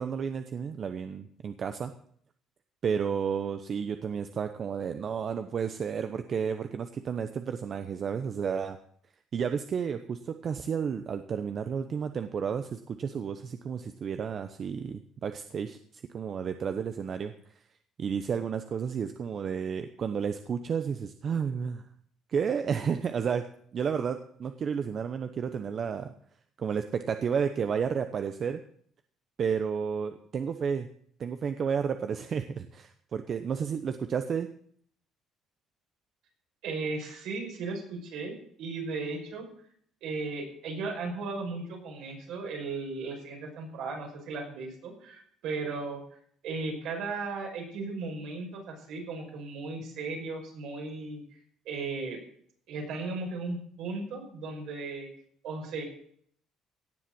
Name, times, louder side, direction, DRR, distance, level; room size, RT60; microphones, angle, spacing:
voice 1, 0.0-1.9 2.8-8.8 9.3-17.6 18.0-21.8 22.3-23.4 23.7-26.1 26.6-28.6 29.4-30.9 31.2-34.5, right 7 dB, 45° right, 8 dB, 0.9 m, -32 dB
voice 2, 36.6-39.5 40.0-46.0 46.4-51.2 51.6-52.2 52.7-55.1 55.4-55.8, right 3 dB, 75° right, 1 dB, 5.7 m, -36 dB
17.0 x 7.6 x 6.1 m, 0.62 s
cardioid pair, 105°, 0 cm